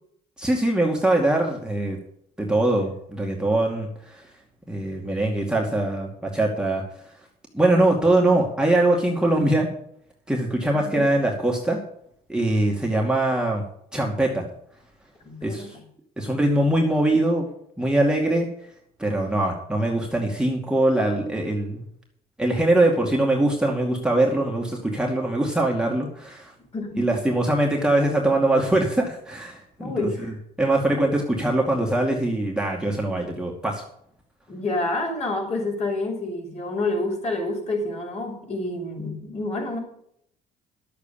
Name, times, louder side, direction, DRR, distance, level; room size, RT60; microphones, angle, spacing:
voice 1, 0.4-2.0 2.4-4.2 4.7-6.8 7.5-9.7 10.3-11.8 12.3-13.6 13.9-14.5 15.4-15.8 16.2-17.5 17.8-18.5 19.0-21.8 22.4-26.5 27.0-29.9 30.6-33.8, right 1 dB, 5° right, -1 dB, 2.3 m, -22 dB
voice 2, 15.2-15.8 26.7-27.1 29.8-30.3 34.5-39.8, left 2 dB, 40° left, -1 dB, 6.0 m, -28 dB
11.5 x 8.4 x 7.1 m, 0.69 s
cardioid pair, 110°, 17 cm